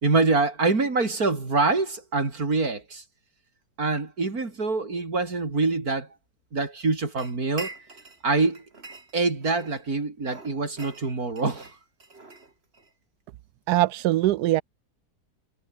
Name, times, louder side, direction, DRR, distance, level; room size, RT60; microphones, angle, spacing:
voice 1, 0.0-3.0 3.8-6.1 6.5-7.7 8.2-8.6 9.1-11.7, right 3 dB, 60° right, 4.2 m, -25 dB
sound 1, 7.2-8.2 8.5-9.8 10.2-12.9, right 3 dB, 35° right, 3.2 m, -43 dB
voice 2, 13.7-14.6, right 15 dB, 75° right, 1.1 m, -22 dB
omnidirectional pair, 1.8 m